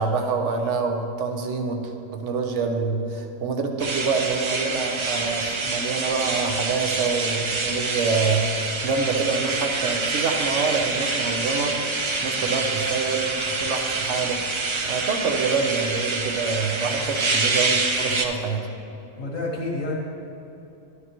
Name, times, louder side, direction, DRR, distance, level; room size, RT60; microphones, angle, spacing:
voice 1, 0.0-11.8 12.2-14.4 14.8-18.7, right 4 dB, 70° right, 4 dB, 1.1 m, -26 dB
sound 1, 3.8-18.3, right 3 dB, 45° right, 0.3 m, -26 dB
voice 2, 19.2-20.0, left 2 dB, 85° left, -4 dB, 1.9 m, -28 dB
11.0 x 9.7 x 3.0 m, 2.8 s
omnidirectional pair, 1.3 m